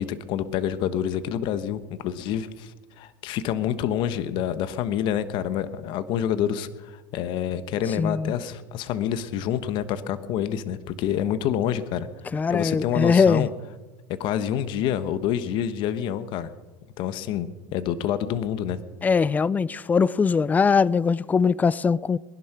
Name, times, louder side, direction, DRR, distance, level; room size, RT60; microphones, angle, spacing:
voice 1, 0.0-12.1 12.5-13.5 14.1-16.5 17.0-18.8, left 10 dB, 55° left, 1.2 m, -27 dB
voice 2, 8.0-8.3 12.3-13.5 19.0-22.2, left 5 dB, 15° left, 0.4 m, -21 dB
20.0 x 11.0 x 6.0 m
supercardioid pair, 125°, 10 cm